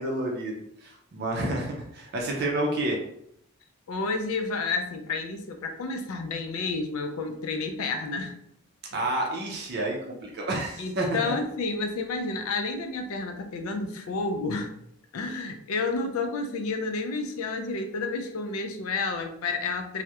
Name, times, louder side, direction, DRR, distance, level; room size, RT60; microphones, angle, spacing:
voice 1, 0.0-3.0 8.9-11.4, right 1 dB, 50° right, -1 dB, 0.4 m, -29 dB
voice 2, 3.9-8.3 10.8-14.7 15.1-20.0, left 3 dB, 80° left, 5 dB, 0.4 m, -30 dB
2.8 x 2.0 x 2.3 m, 0.74 s
head